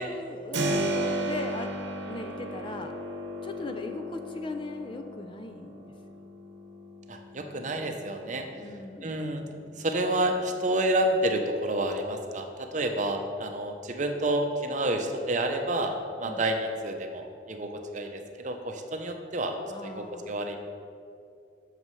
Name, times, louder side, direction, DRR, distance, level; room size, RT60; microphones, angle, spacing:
voice 1, 0.0-1.7 2.1-2.9 3.4-5.9 8.5-9.2 16.2-16.4 19.7-20.4, left 2 dB, 25° left, 6 dB, 0.4 m, -38 dB
Keyboard (musical), 0.5-11.2, right 1 dB, 75° right, 0.9 m, -36 dB
voice 2, 7.1-8.4 9.0-9.4 9.8-19.6 19.8-20.6, right 1 dB, 40° right, 4 dB, 0.7 m, -29 dB
12.5 x 6.5 x 3.2 m, 2.4 s
head